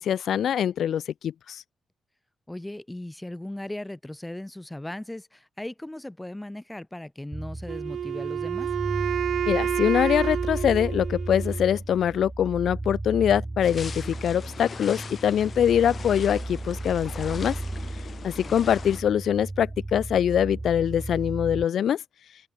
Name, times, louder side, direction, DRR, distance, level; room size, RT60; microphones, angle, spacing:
voice 1, 0.0-1.6 9.5-17.6 18.2-22.0, left 9 dB, 80° left, 0.7 m, -24 dB
voice 2, 2.5-8.7 18.4-18.9, left 1 dB, 10° left, 3.0 m, -38 dB
sound 1, 7.3-21.6, right 2 dB, 20° right, 2.5 m, -35 dB
Wind instrument woodwind instrument, 7.7-11.7, right 9 dB, 75° right, 0.3 m, -29 dB
sound 2, 13.6-19.0, left 6 dB, 50° left, 2.4 m, -41 dB
open air
cardioid pair, 80°, 0 cm